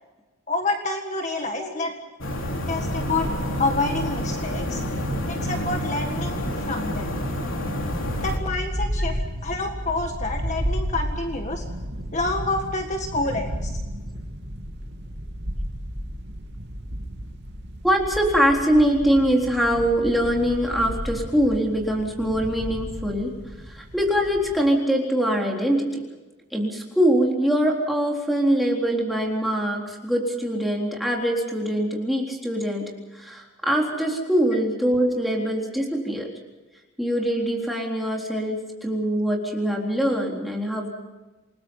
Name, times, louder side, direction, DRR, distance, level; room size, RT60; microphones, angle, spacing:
voice 1, 0.5-1.9 2.7-3.3 3.6-4.8 5.3-6.4 6.7-7.1 8.2-11.6 12.1-13.8, left 2 dB, 35° left, 4 dB, 1.7 m, -28 dB
voice 2, 1.4-1.7 9.1-9.2 17.8-23.3 23.7-26.0 26.5-36.3 37.0-40.9, equal, ahead, -1 dB, 3.9 m, -23 dB
sound 1, 2.2-8.4, equal, 65° left, 3.7 m, -28 dB
sound 2, 7.9-24.6, equal, 55° right, 2.8 m, -32 dB
28.5 x 20.5 x 5.6 m, 1.2 s
head